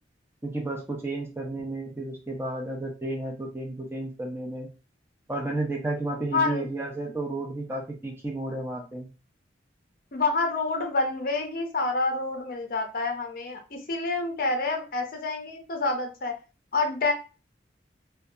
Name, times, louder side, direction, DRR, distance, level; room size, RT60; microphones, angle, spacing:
voice 1, 0.4-4.7 5.3-9.1, right 2 dB, 15° right, 0 dB, 0.5 m, -32 dB
voice 2, 6.3-6.6 10.1-16.3 16.7-17.1, left 3 dB, 50° left, 4 dB, 0.5 m, -28 dB
2.6 x 2.2 x 2.3 m, 0.33 s
head